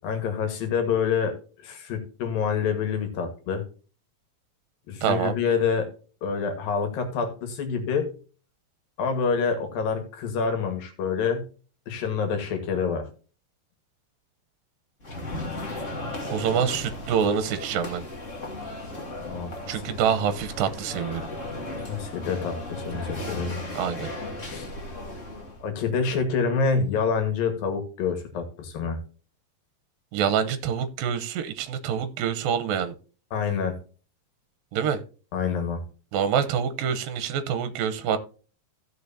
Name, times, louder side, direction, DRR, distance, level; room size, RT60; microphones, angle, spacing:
voice 1, 0.0-1.3 1.6-3.6 4.9-5.9 6.2-8.1 9.0-11.5 11.9-13.1 19.3-19.8 21.9-23.6 24.5-24.7 25.6-29.0 33.3-33.8 35.3-35.8, left 5 dB, 75° left, 6 dB, 3.4 m, -27 dB
voice 2, 5.0-5.3 16.3-18.1 19.7-21.3 23.8-24.1 30.1-33.0 34.7-35.0 36.1-38.2, right 7 dB, 75° right, 12 dB, 2.6 m, -26 dB
sound 1, 15.0-25.7, left 2 dB, 30° left, 1.7 m, -36 dB
16.0 x 6.3 x 2.8 m, 0.37 s
omnidirectional pair, 4.2 m